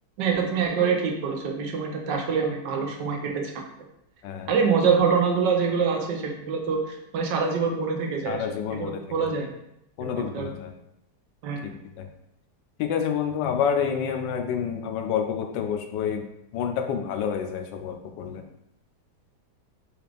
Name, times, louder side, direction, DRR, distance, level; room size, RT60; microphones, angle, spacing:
voice 1, 0.2-3.7 4.5-8.4 8.8-9.5 10.1-10.5 11.4-11.7, right 5 dB, 85° right, 2 dB, 1.3 m, -25 dB
voice 2, 8.3-9.3 10.0-10.7 11.6-12.1 12.8-16.2 16.5-18.4, left 7 dB, 90° left, 5 dB, 1.2 m, -28 dB
4.8 x 2.4 x 3.3 m, 0.80 s
omnidirectional pair, 1.9 m